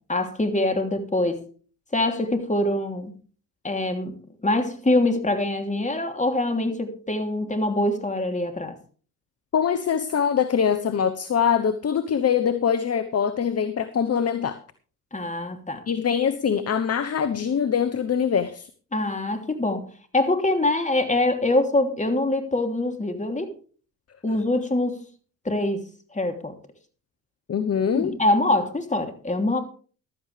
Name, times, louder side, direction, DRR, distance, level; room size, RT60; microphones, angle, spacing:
voice 1, 0.0-1.4 1.9-3.1 3.6-4.1 4.4-8.8 15.1-15.8 18.9-19.9 20.1-23.5 24.2-25.0 25.4-25.8 26.1-26.5 27.9-29.6, left 2 dB, 15° left, 6 dB, 3.0 m, -24 dB
voice 2, 9.5-14.6 15.9-18.7 27.5-28.1, left 7 dB, 35° left, 12 dB, 1.1 m, -23 dB
15.0 x 12.5 x 3.4 m, 0.39 s
hypercardioid pair, 60°, 41 cm